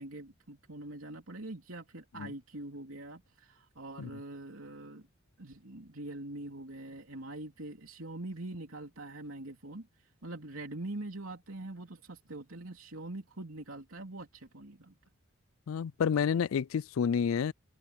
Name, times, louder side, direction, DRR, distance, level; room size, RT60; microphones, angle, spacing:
voice 1, 0.0-5.1 5.4-9.9 10.2-14.9, right 2 dB, 85° right, 3.2 m, -43 dB
voice 2, 15.7-17.5, left 7 dB, 80° left, 0.4 m, -29 dB
head